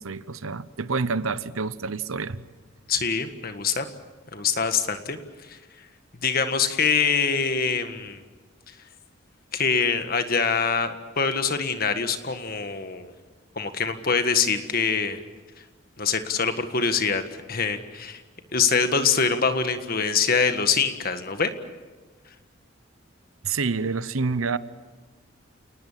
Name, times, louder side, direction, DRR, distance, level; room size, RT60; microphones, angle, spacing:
voice 1, 0.0-2.4 23.4-24.6, right 4 dB, 85° right, 16 dB, 0.9 m, -28 dB
voice 2, 2.9-3.9 4.3-5.6 6.1-8.2 9.5-13.1 13.5-15.2 16.0-17.2 17.5-18.2 18.5-21.5, left 5 dB, 45° left, 8 dB, 1.6 m, -24 dB
28.5 x 19.5 x 7.4 m, 1.3 s
head